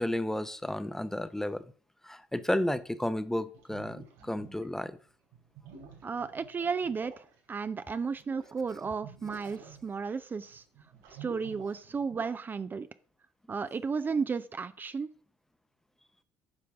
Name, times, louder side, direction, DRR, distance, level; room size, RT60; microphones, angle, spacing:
voice 1, 0.0-1.6 2.0-5.0, left 1 dB, 5° left, 0.7 m, -32 dB
sound 1, 3.5-4.9 5.3-12.3, right 5 dB, 75° right, 3.9 m, -51 dB
voice 2, 6.0-10.6 11.2-12.9 13.5-15.1, right 5 dB, 30° right, 0.5 m, -33 dB
9.7 x 5.9 x 3.6 m
hypercardioid pair, 55°, 6 cm